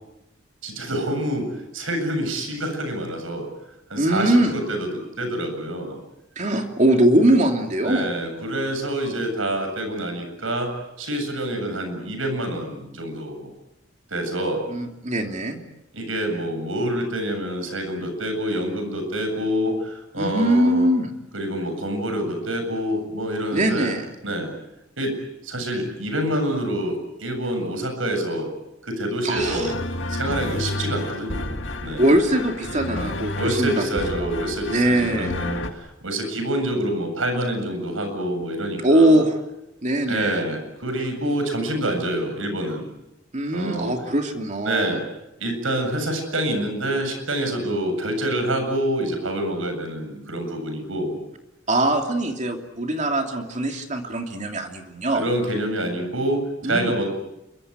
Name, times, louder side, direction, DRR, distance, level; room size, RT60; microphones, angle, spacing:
voice 1, 0.6-1.5 1.7-3.5 3.9-6.0 7.8-10.7 11.0-13.5 14.1-14.6 15.9-20.9 21.3-23.9 24.2-24.5 25.0-25.1 25.4-28.5 28.8-29.7 30.1-31.5 31.8-32.1 33.4-39.2 40.1-42.9 43.5-43.9 44.6-45.0 45.4-51.2 55.1-57.1, right 1 dB, 85° right, 6 dB, 7.7 m, -26 dB
voice 2, 4.0-4.5 6.4-8.1 14.7-15.6 20.2-21.1 23.5-24.1 29.2-29.7 32.0-34.3 34.7-35.4 38.8-39.3 39.8-40.4 43.3-45.0 51.7-55.3 56.6-56.9, right 1 dB, 35° right, 3 dB, 3.0 m, -21 dB
sound 1, 29.4-35.7, left 2 dB, 65° left, 2.2 m, -30 dB
28.0 x 24.5 x 8.2 m, 0.91 s
head